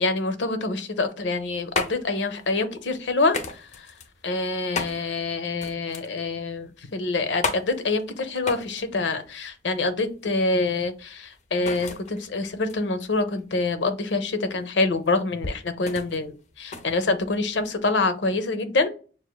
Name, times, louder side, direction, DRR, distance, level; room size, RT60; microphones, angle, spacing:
voice 1, 0.0-3.9 4.2-18.9, left 3 dB, 85° left, 9 dB, 0.7 m, -26 dB
sound 1, 1.2-17.8, left 3 dB, 40° left, 0.5 m, -36 dB
6.3 x 2.5 x 2.3 m, 0.37 s
head